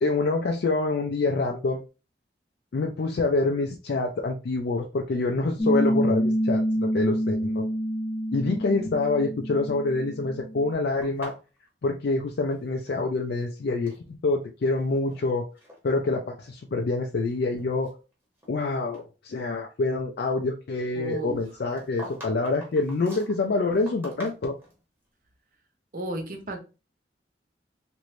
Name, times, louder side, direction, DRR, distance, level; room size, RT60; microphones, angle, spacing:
voice 1, 0.0-1.8 2.7-7.7 8.3-11.3 11.8-15.5 15.8-17.9 18.5-24.6, left 3 dB, 60° left, 0.4 m, -26 dB
Piano, 5.6-10.7, equal, 10° left, 0.6 m, -27 dB
sound 1, 11.0-13.0 13.3-14.0 14.7-15.2 15.6-15.8 16.4-16.5 17.1-18.6 18.9-19.1 21.4-24.8, right 1 dB, 10° right, 1.1 m, -45 dB
voice 2, 21.0-21.4 25.9-26.6, right 1 dB, 50° right, 0.7 m, -33 dB
3.0 x 2.5 x 3.0 m
head